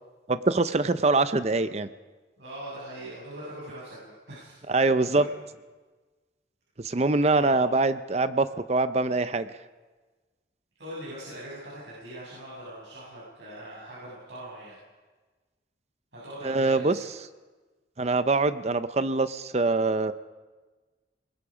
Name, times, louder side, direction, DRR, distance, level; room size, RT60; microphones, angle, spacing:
voice 1, 0.3-1.9 4.7-5.3 6.8-9.5 16.4-17.0 18.0-20.1, right 3 dB, 35° right, 12 dB, 0.6 m, -24 dB
voice 2, 2.4-4.7 5.1-5.3 7.4-7.6 10.8-14.8 16.1-16.9, right 1 dB, 75° right, -7 dB, 6.9 m, -41 dB
25.0 x 21.5 x 5.0 m, 1.3 s
head